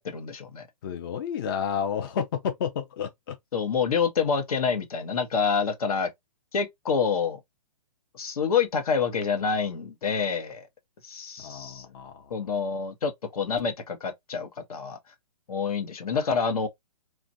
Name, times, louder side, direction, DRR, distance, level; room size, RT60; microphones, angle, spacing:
voice 1, 0.0-0.7 3.5-6.1 6.5-7.4 8.1-10.7 11.0-11.8 12.3-15.0 15.5-16.7, left 6 dB, 70° left, 0.9 m, -27 dB
voice 2, 0.8-3.3 11.4-12.3, left 7 dB, 35° left, 0.5 m, -31 dB
3.1 x 2.4 x 2.6 m
hypercardioid pair, 155°, 19 cm